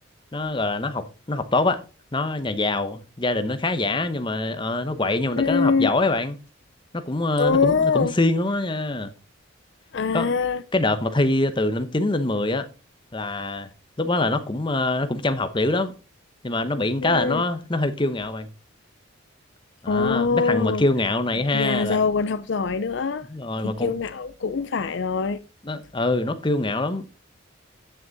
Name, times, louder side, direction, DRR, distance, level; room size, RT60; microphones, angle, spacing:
voice 1, 0.3-1.8 2.1-6.4 6.9-9.1 10.1-10.3 10.7-12.7 13.1-13.7 14.0-16.0 16.4-18.5 19.8-22.0 23.3-23.9 25.6-27.1, left 2 dB, 25° left, 0.8 m, -24 dB
voice 2, 5.4-6.0 7.4-8.1 9.9-10.6 17.0-17.4 19.9-20.8 21.5-23.3 23.6-25.4, left 4 dB, 55° left, 0.5 m, -23 dB
9.9 x 6.3 x 4.0 m
head